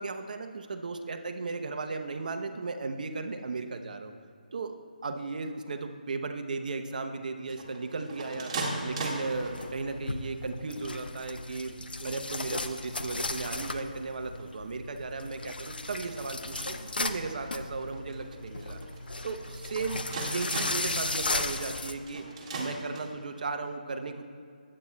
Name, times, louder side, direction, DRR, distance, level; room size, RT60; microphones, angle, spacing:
voice 1, 0.0-4.1 4.5-4.8 5.0-8.6 8.8-18.8 19.2-22.2 22.6-24.3, right 3 dB, 60° right, 6 dB, 0.8 m, -36 dB
sound 1, 7.5-10.0 10.6-11.2 11.6-11.7 11.9-12.5 12.9-23.4, right 2 dB, 35° right, 1.7 m, -40 dB
sound 2, 9.3-21.9, left 2 dB, 85° left, 0.6 m, -36 dB
19.5 x 8.7 x 2.3 m, 2.3 s
figure-of-eight pair, 155°, 5 cm